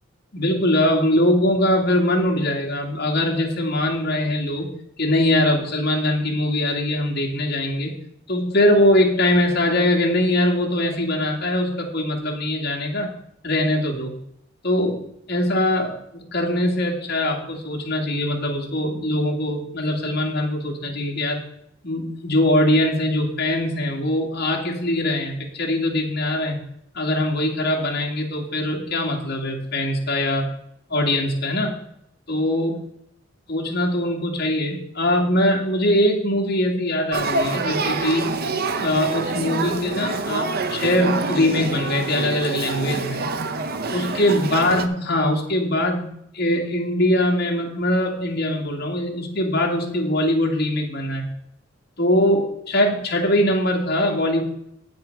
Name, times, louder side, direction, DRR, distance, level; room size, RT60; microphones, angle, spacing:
voice 1, 0.3-4.7 5.0-7.9 8.3-13.1 13.4-14.1 14.6-15.0 15.3-21.4 21.8-26.6 26.9-30.5 30.9-31.8 32.3-32.8 33.5-38.5 38.8-43.2 43.9-51.2 52.0-54.4, left 1 dB, 55° left, -1 dB, 2.2 m, -22 dB
Male speech man speaking / Child speech kid speaking / Conversation, 37.1-44.9, right 3 dB, 50° right, 0.7 m, -26 dB
8.9 x 8.1 x 4.7 m, 0.73 s
head